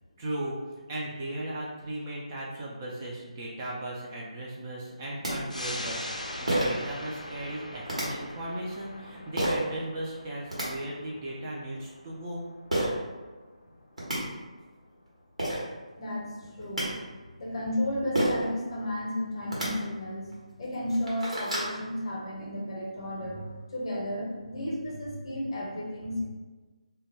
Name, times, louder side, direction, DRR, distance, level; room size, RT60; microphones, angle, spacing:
voice 1, 0.2-0.6 0.9-12.4, right 1 dB, 25° right, -5 dB, 0.3 m, -37 dB
sound 1, 5.2-5.3 6.5-6.8 7.9-8.0 9.4-9.6 10.3-10.7 12.7-12.9 13.7-13.8 14.0-14.2 15.1-15.2 15.4-15.6 16.4-16.8 18.1-18.5 19.4-19.7 20.3-20.4 20.8-21.7, right 1 dB, 70° right, 1.0 m, -28 dB
sound 2, 5.5-16.5 16.9-17.0, left 1 dB, 80° left, 0.4 m, -43 dB
voice 2, 16.0-26.2, left 1 dB, 40° left, -4 dB, 0.7 m, -33 dB
2.2 x 2.1 x 3.2 m, 1.3 s
figure-of-eight pair, 150°, 4 cm